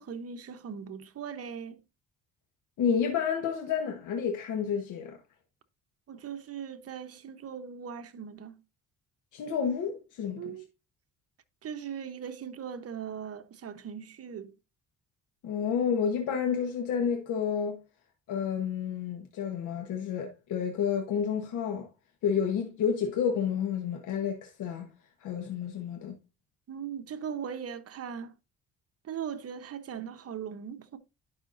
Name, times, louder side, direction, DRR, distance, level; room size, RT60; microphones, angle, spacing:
voice 1, 0.0-1.8 6.1-8.6 10.4-10.7 11.6-14.5 26.7-28.3 29.0-31.0, right 7 dB, 50° right, 1.0 m, -39 dB
voice 2, 2.8-5.2 9.3-10.4 15.4-17.8 18.3-21.9 22.2-24.9 25.2-26.2, left 7 dB, 85° left, 1.2 m, -30 dB
11.0 x 5.7 x 2.6 m
cardioid pair, 90°, 30 cm